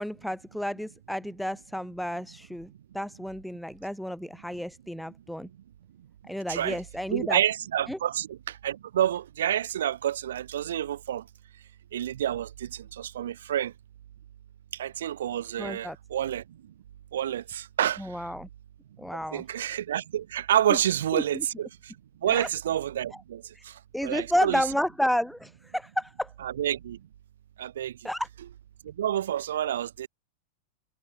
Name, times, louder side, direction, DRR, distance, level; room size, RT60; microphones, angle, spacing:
voice 1, 0.0-5.5 6.3-7.4 7.9-8.0 15.6-16.0 18.0-18.5 19.0-19.4 21.1-21.4 22.3-22.5 23.6-23.7 23.9-26.3 28.0-28.3, equal, ahead, 0.9 m, -31 dB
voice 2, 7.1-11.2 11.9-13.7 14.7-16.4 17.1-18.1 19.3-21.9 22.2-24.6 26.4-27.0 27.6-27.9 28.8-30.1, right 11 dB, 60° right, 0.4 m, -29 dB
figure-of-eight pair, 90°, 0 cm